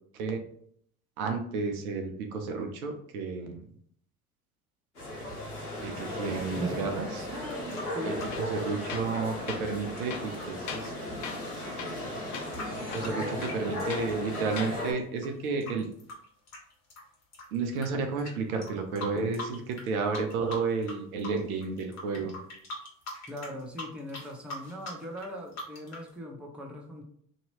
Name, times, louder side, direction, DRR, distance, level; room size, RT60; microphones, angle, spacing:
voice 1, 1.2-3.6 5.8-7.3 8.1-8.2 8.5-10.9 12.9-15.9 17.5-22.4, right 4 dB, 70° right, 5 dB, 0.7 m, -32 dB
sound 1, 4.9-14.9, left 1 dB, 90° left, 1.1 m, -36 dB
voice 2, 6.6-6.9 7.3-8.3 13.0-13.5 23.3-27.0, equal, ahead, -1 dB, 0.7 m, -40 dB
sound 2, 7.3-14.4 14.7-17.9 18.2-18.3 18.6-19.9 20.1-20.9 21.2-26.1, left 2 dB, 35° left, 1.5 m, -42 dB
Tools, 8.3-8.5 8.9-9.2 9.5-9.7 10.1-11.0 11.2-11.5 11.8-12.1 12.3-12.5 12.9-14.1 14.5-14.8, left 6 dB, 55° left, 0.7 m, -40 dB
3.0 x 2.8 x 2.8 m, 0.64 s
hypercardioid pair, 70°, 44 cm